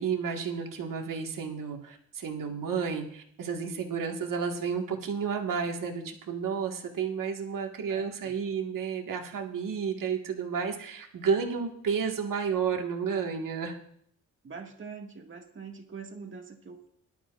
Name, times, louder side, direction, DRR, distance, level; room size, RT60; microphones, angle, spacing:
voice 1, 0.0-13.8, right 6 dB, 65° right, 2 dB, 1.8 m, -31 dB
voice 2, 7.9-8.3 14.4-16.9, right 5 dB, 35° right, 2 dB, 2.0 m, -44 dB
18.5 x 11.5 x 2.5 m, 0.67 s
cardioid pair, 90°, 35 cm